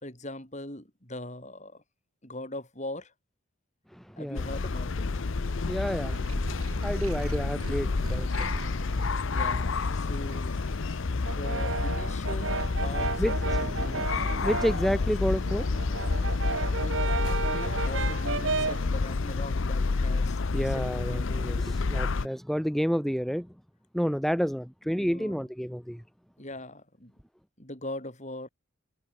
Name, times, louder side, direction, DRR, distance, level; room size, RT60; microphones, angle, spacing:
voice 1, 0.0-1.8 2.2-3.1 4.2-5.2 9.3-10.6 11.3-14.1 16.7-21.5 24.8-25.5 26.4-27.1 27.6-28.5, left 1 dB, 30° left, 5.5 m, -41 dB
sound 1, 4.4-22.3, left 3 dB, 60° left, 0.6 m, -29 dB
voice 2, 5.7-6.3 6.8-8.5 13.2-13.3 14.3-16.2 20.5-23.5 23.9-26.0, equal, ahead, 1.2 m, -30 dB
sound 2, 6.0-11.4, right 1 dB, 85° right, 5.6 m, -38 dB
Brass instrument, 11.2-14.9 15.3-18.9, right 4 dB, 60° right, 1.6 m, -32 dB
head